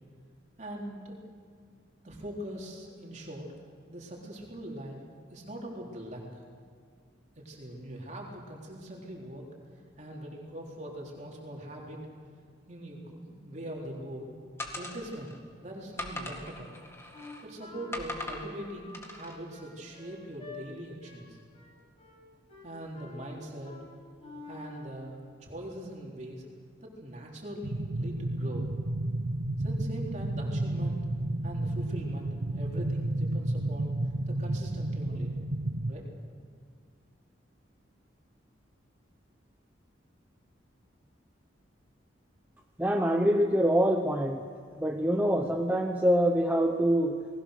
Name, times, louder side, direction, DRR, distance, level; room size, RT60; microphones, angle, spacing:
voice 1, 0.6-1.2 2.0-3.5 3.9-5.0 5.3-6.4 7.4-9.5 10.0-12.0 12.7-14.3 14.7-16.8 17.4-21.4 22.6-23.7 24.5-26.4 26.8-28.7 29.6-31.1 31.4-33.9 34.3-35.4 35.9-36.0, right 1 dB, 35° right, -1 dB, 3.7 m, -41 dB
sound 1, 14.6-15.4 16.0-17.5 17.9-18.5 18.9-19.4, left 1 dB, 15° left, 2.0 m, -40 dB
Wind instrument woodwind instrument, 17.1-20.6 21.0-21.3 21.5-22.2 22.5-23.2 23.6-23.9 24.2-24.9, left 3 dB, 30° left, 5.0 m, -48 dB
sound 2, 27.6-35.9, right 1 dB, 85° right, 1.2 m, -32 dB
voice 2, 42.8-44.4 44.8-47.3, equal, 10° right, 3 dB, 0.8 m, -25 dB
29.5 x 19.5 x 6.6 m, 2.1 s
head